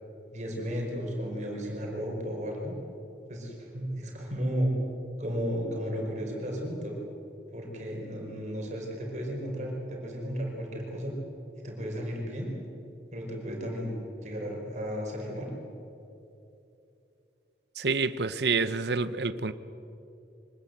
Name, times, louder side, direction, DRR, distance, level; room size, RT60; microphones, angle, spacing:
voice 1, 0.3-2.8 3.3-4.7 5.2-7.0 7.5-11.2 11.6-12.5 13.1-14.0 14.2-15.5, equal, 40° right, 4.9 m, -34 dB
voice 2, 17.8-19.5, right 4 dB, 65° right, 0.8 m, -28 dB
24.5 x 20.0 x 8.1 m
head